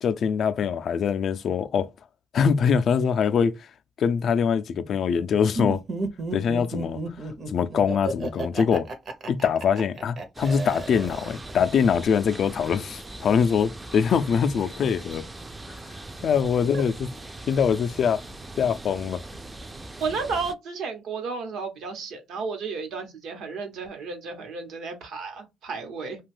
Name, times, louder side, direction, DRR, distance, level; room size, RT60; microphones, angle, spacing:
voice 1, 0.0-1.9 2.3-3.5 4.0-5.8 6.3-7.0 7.5-8.9 9.3-15.2 16.2-16.9 17.5-18.2 18.6-19.2, left 7 dB, 60° left, 0.3 m, -23 dB
Laughter, 5.5-11.5, right 2 dB, 55° right, 0.7 m, -32 dB
sound 1, 10.3-20.5, right 2 dB, 20° right, 0.3 m, -41 dB
voice 2, 20.0-26.2, right 4 dB, 85° right, 0.9 m, -32 dB
2.5 x 2.2 x 3.2 m
cardioid pair, 90°, 0 cm